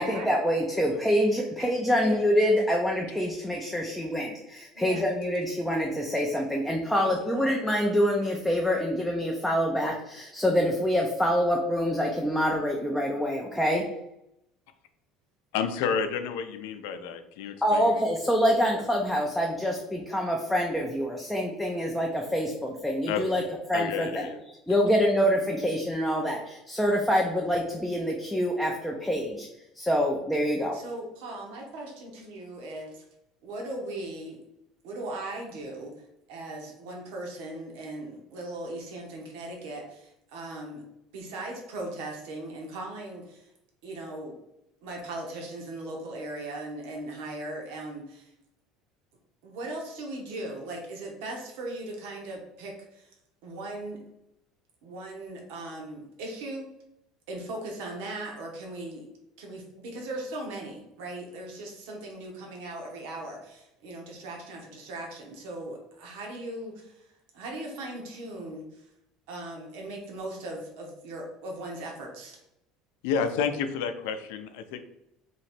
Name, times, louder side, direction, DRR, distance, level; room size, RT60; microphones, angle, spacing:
voice 1, 0.0-13.8 17.6-23.4 23.7-24.3 24.7-29.5 29.8-30.8, equal, ahead, -1 dB, 0.4 m, -26 dB
voice 2, 1.6-2.2 4.8-5.0 6.9-7.5 30.7-33.0 33.4-34.4 34.8-35.9 36.3-40.8 41.1-43.5 43.8-44.4 44.8-48.3 49.4-53.1 53.4-54.0 54.8-56.6 57.3-59.0 59.4-67.0 67.3-68.8 69.3-72.4, right 2 dB, 70° right, 0 dB, 1.0 m, -38 dB
voice 3, 15.5-18.0 23.1-23.4 23.7-24.4 73.0-74.8, left 6 dB, 75° left, 8 dB, 0.5 m, -30 dB
3.1 x 2.9 x 4.3 m, 0.83 s
cardioid pair, 180°, 0 cm